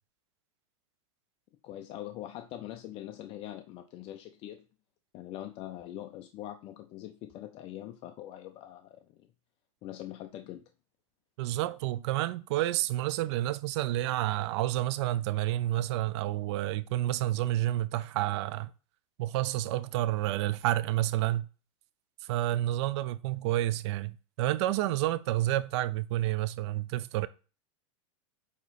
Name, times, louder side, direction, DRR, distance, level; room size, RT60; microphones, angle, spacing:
voice 1, 1.6-4.6 5.1-9.3 9.8-10.6, left 13 dB, 35° left, 0.5 m, -43 dB
voice 2, 11.4-18.7 19.2-21.5 22.2-27.3, right 15 dB, 55° right, 0.5 m, -29 dB
8.3 x 3.0 x 4.1 m
supercardioid pair, 140°, 17 cm